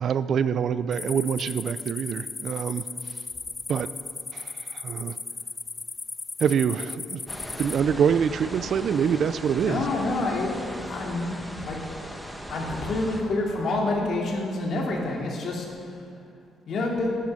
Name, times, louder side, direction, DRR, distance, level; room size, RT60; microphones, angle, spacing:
voice 1, 0.0-2.9 3.7-3.9 4.3-5.2 6.4-7.2 7.6-9.8, right 7 dB, 60° right, 15 dB, 0.4 m, -25 dB
sound 1, 0.9-7.8, left 4 dB, 30° left, 0.3 m, -36 dB
sound 2, 7.3-13.2, equal, ahead, 1.2 m, -38 dB
voice 2, 9.6-11.8 12.5-15.6 16.7-17.2, left 2 dB, 65° left, -1 dB, 2.5 m, -28 dB
11.5 x 10.0 x 5.4 m, 2.5 s
cardioid pair, 90°, 0 cm